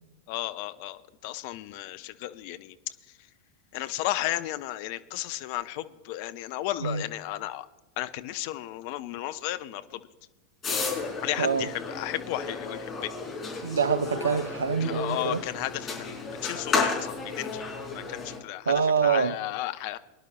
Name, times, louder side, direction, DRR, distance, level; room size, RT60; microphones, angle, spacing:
voice 1, 0.3-2.8 3.7-7.7 8.0-10.0 11.2-13.2 14.8-17.6 17.9-20.0, left 15 dB, 45° left, 0.6 m, -34 dB
sound 1, 10.6-18.4, left 4 dB, 20° left, 4.3 m, -33 dB
voice 2, 11.4-11.7 13.6-15.4 18.7-19.4, right 6 dB, 70° right, 0.6 m, -25 dB
23.0 x 11.0 x 2.4 m
figure-of-eight pair, 90°, 0 cm